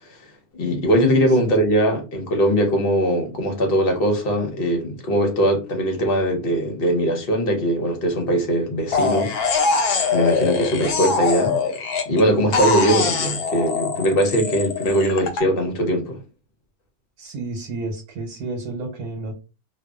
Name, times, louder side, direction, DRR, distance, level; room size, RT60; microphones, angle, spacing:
voice 1, 0.5-9.7 10.1-11.6 12.1-16.2, equal, 50° left, 0.8 m, -21 dB
sound 1, 8.9-12.2 12.5-15.4, left 4 dB, 80° left, 1.1 m, -22 dB
voice 2, 17.2-19.4, right 2 dB, 85° right, 1.3 m, -31 dB
2.7 x 2.3 x 2.3 m
omnidirectional pair, 1.7 m